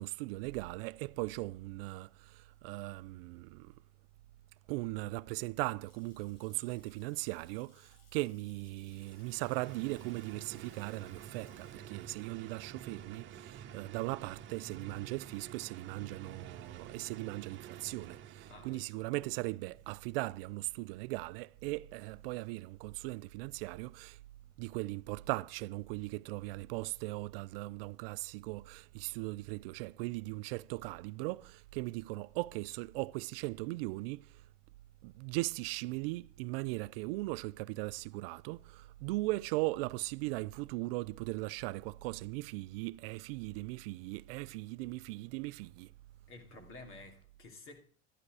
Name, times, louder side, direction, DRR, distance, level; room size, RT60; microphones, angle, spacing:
voice 1, 0.0-3.7 4.7-24.2 24.6-34.2 35.0-45.9, right 21 dB, 75° right, 0.5 m, -38 dB
Water tap faucet / Sink (filling or washing) / Splash splatter, 5.6-14.3, left 4 dB, 85° left, 4.2 m, -68 dB
sound 1, 8.9-18.9, right 9 dB, 40° right, 1.3 m, -50 dB
voice 2, 18.5-19.8 46.3-47.8, left 3 dB, 45° left, 2.7 m, -53 dB
11.5 x 11.0 x 4.8 m
supercardioid pair, 120°, 30 cm